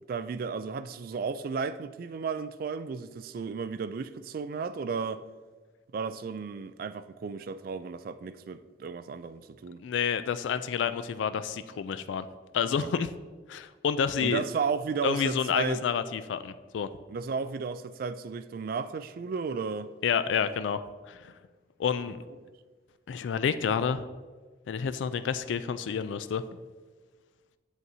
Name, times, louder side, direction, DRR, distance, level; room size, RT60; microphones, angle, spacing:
voice 1, 0.1-5.3 5.9-9.8 12.8-13.1 14.2-15.8 17.1-19.9, right 5 dB, 50° right, 0.3 m, -34 dB
voice 2, 9.8-12.3 12.5-13.1 13.5-14.4 15.0-16.9 20.0-20.8 21.1-21.3 21.8-22.2 23.1-24.0 24.7-26.4, left 7 dB, 80° left, 0.3 m, -29 dB
8.1 x 7.4 x 2.7 m
head